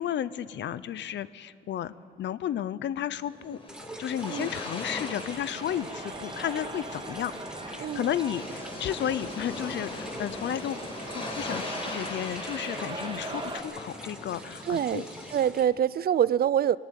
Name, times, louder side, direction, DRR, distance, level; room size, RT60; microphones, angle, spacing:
voice 1, 0.0-3.6 4.0-7.3 7.6-10.8 11.1-15.1, left 10 dB, 65° left, 16 dB, 0.8 m, -33 dB
sound 1, 3.2-15.4, left 2 dB, 25° left, 5.1 m, -40 dB
sound 2, 3.7-15.6, right 1 dB, 5° right, 1.5 m, -46 dB
sound 3, 4.6-13.6, right 2 dB, 25° right, 2.8 m, -40 dB
voice 2, 14.7-15.0 15.3-16.8, right 9 dB, 50° right, 20 dB, 0.5 m, -25 dB
21.0 x 18.0 x 9.2 m, 2.2 s
cardioid pair, 90°, 20 cm